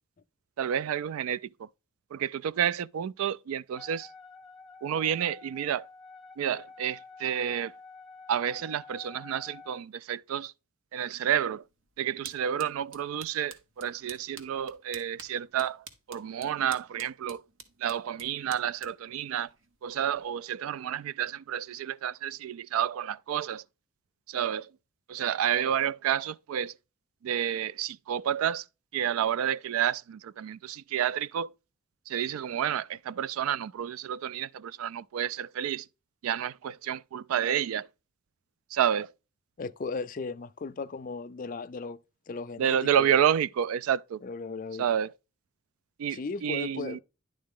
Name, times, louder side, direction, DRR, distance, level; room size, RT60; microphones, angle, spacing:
voice 1, 0.6-1.7 2.1-4.1 4.8-5.9 6.4-7.7 8.3-10.5 10.9-11.6 12.0-17.4 17.8-19.5 19.8-23.6 24.3-24.7 25.1-26.7 27.2-28.6 28.9-31.5 32.1-35.9 36.2-37.9 38.7-39.1 42.6-44.2 44.8-45.1 46.0-47.0, right 9 dB, 85° right, 0.3 m, -30 dB
Wind instrument woodwind instrument, 3.8-9.8, left 4 dB, ahead, 0.7 m, -49 dB
sound 1, 11.6-20.3, right 5 dB, 65° right, 1.0 m, -51 dB
voice 2, 39.6-42.0 42.3-43.2 44.2-44.8 46.1-47.0, left 4 dB, 40° left, 0.4 m, -36 dB
10.5 x 3.8 x 3.6 m
head